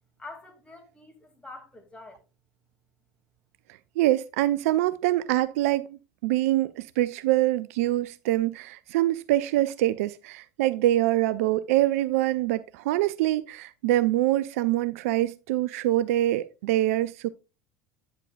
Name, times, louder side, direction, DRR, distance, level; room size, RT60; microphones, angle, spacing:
voice 1, 0.2-2.2, left 3 dB, 10° left, 2.2 m, -46 dB
voice 2, 4.0-17.3, right 15 dB, 60° right, 0.3 m, -25 dB
8.9 x 7.5 x 2.3 m
figure-of-eight pair, 70°, 9 cm